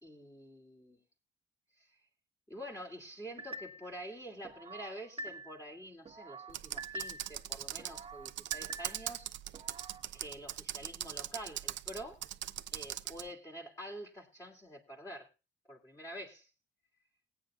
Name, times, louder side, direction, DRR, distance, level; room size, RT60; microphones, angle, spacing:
voice 1, 0.0-1.0 1.7-2.1 2.5-9.3 10.1-12.2 12.7-15.3 15.6-16.5, equal, 15° left, 2.8 m, -47 dB
sound 1, 3.4-4.0 4.4-5.7 6.0-7.4 7.8-9.1 9.5-10.0, right 2 dB, 25° right, 1.2 m, -46 dB
Computer keyboard, 6.5-13.3, right 12 dB, 70° right, 0.7 m, -41 dB
21.0 x 8.8 x 2.5 m
cardioid pair, 90°, 20 cm